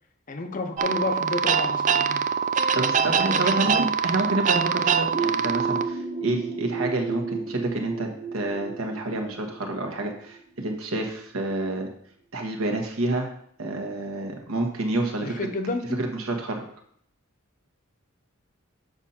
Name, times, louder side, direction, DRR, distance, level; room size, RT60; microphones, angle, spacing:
voice 1, 0.3-2.2 3.0-3.9 15.2-16.0, left 2 dB, 40° left, 7 dB, 0.7 m, -31 dB
sound 1, 0.8-5.9, right 6 dB, 35° right, 0.3 m, -24 dB
voice 2, 2.7-11.9 12.3-13.3 13.6-15.3 16.0-16.6, right 2 dB, 80° right, 2 dB, 1.4 m, -28 dB
sound 2, 5.1-10.7, right 4 dB, 10° right, 0.9 m, -33 dB
7.1 x 5.4 x 4.3 m, 0.65 s
head